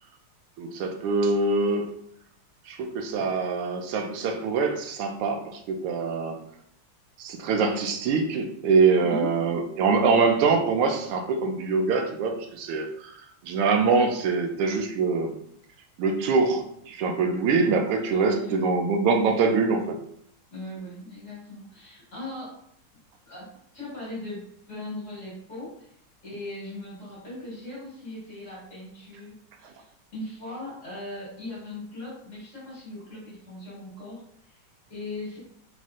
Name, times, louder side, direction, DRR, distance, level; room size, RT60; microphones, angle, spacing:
voice 1, 0.6-2.0 2.7-6.4 7.2-13.1 13.4-15.3 16.0-20.0, right 4 dB, 85° right, 4 dB, 1.5 m, -24 dB
voice 2, 9.0-9.3 18.1-18.7 20.5-22.6 23.2-25.9 26.2-34.6 34.9-35.4, left 2 dB, 35° left, -6 dB, 1.9 m, -39 dB
4.1 x 4.1 x 2.4 m, 0.67 s
omnidirectional pair, 2.4 m